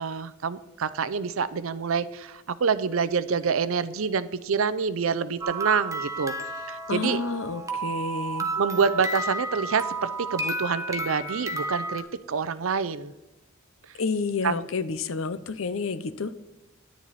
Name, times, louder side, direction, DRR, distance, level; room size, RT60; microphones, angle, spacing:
voice 1, 0.0-6.3 6.7-7.2 8.6-13.1 14.4-14.7, right 5 dB, 75° right, 16 dB, 0.6 m, -27 dB
sound 1, 5.4-12.0, right 2 dB, 15° right, 0.9 m, -32 dB
voice 2, 6.9-8.5 14.0-16.4, left 4 dB, 70° left, 14 dB, 0.7 m, -30 dB
10.5 x 10.0 x 4.2 m, 0.99 s
head